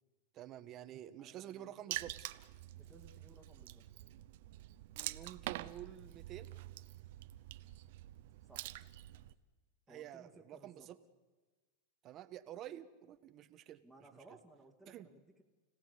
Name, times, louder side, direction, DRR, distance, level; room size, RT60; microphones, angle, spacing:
voice 1, 0.3-2.3 4.9-6.5 9.9-11.0 12.0-13.8 14.9-15.1, right 12 dB, 35° right, 11 dB, 1.3 m, -49 dB
voice 2, 1.2-1.9 2.8-3.8 8.5-8.7 9.9-10.9 13.8-15.4, right 2 dB, ahead, 3 dB, 2.5 m, -60 dB
Water / Splash splatter, 1.9-9.3, right 16 dB, 65° right, 0.9 m, -46 dB
30.0 x 17.5 x 8.3 m, 1.3 s
supercardioid pair, 135°, 0 cm